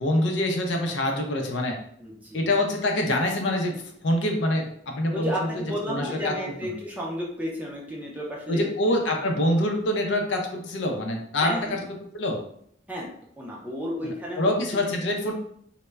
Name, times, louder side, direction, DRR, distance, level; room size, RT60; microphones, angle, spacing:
voice 1, 0.0-1.8 2.3-3.7 4.0-5.5 5.9-6.3 6.6-6.7 8.5-11.8 12.1-12.4 14.0-15.3, left 1 dB, 75° left, 2 dB, 0.5 m, -25 dB
voice 2, 2.0-2.5 5.1-8.6 11.4-11.8 12.9-13.1 13.4-14.8, equal, 10° right, -4 dB, 0.4 m, -32 dB
2.1 x 2.1 x 3.3 m, 0.68 s
head